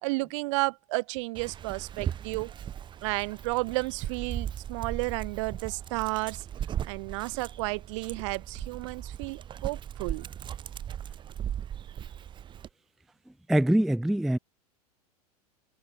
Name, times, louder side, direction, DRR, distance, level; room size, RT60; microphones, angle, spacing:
voice 1, 0.0-2.5 3.0-6.4 6.8-10.3, right 25 dB, 50° right, 2.3 m, -32 dB
Dog, 1.3-12.7, right 9 dB, 25° right, 1.1 m, -38 dB
voice 2, 13.5-14.4, right 1 dB, ahead, 0.3 m, -23 dB
figure-of-eight pair, 90°, 20 cm